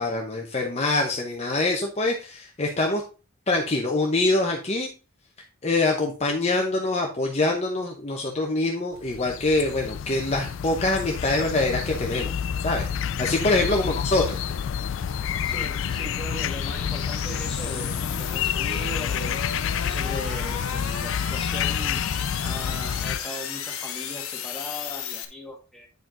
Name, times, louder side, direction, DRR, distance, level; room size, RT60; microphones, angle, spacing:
voice 1, 0.0-3.0 3.5-4.9 5.6-12.3 12.6-14.4, left 2 dB, 30° left, 1 dB, 0.8 m, -24 dB
sound 1, 9.0-23.2, left 8 dB, 60° left, 0.3 m, -29 dB
sound 2, 13.7-25.3, left 7 dB, 85° left, 1.2 m, -35 dB
voice 2, 15.4-19.4 19.8-22.1 22.4-25.9, left 1 dB, ahead, -2 dB, 1.8 m, -38 dB
9.3 x 5.0 x 3.8 m, 0.33 s
head